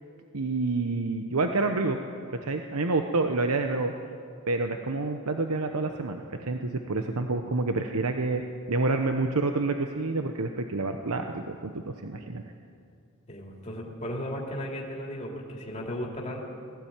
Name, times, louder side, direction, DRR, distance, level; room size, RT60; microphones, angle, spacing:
voice 1, 0.3-2.0 2.4-3.9 4.5-8.4 8.7-12.4, right 3 dB, 90° right, 5 dB, 1.0 m, -28 dB
voice 2, 13.3-16.5, equal, 30° left, -2 dB, 2.7 m, -35 dB
20.0 x 15.5 x 8.9 m, 2.4 s
head